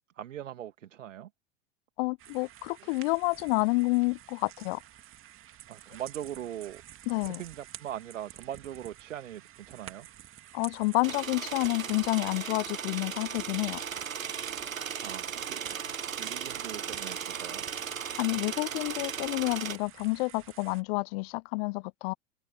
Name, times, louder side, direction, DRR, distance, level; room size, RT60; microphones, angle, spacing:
voice 1, 0.2-1.3 5.7-6.8 7.3-9.4 9.7-10.1 15.0-15.8 16.2-17.6, right 11 dB, 70° right, 2.0 m, -40 dB
voice 2, 2.0-4.8 7.1-7.4 10.5-13.8 18.2-22.1, left 27 dB, 50° left, 0.9 m, -29 dB
sound 1, 2.2-20.8, right 12 dB, 30° right, 2.5 m, -51 dB
sound 2, 11.0-19.8, right 7 dB, 90° right, 0.7 m, -36 dB
figure-of-eight pair, 85°, 39 cm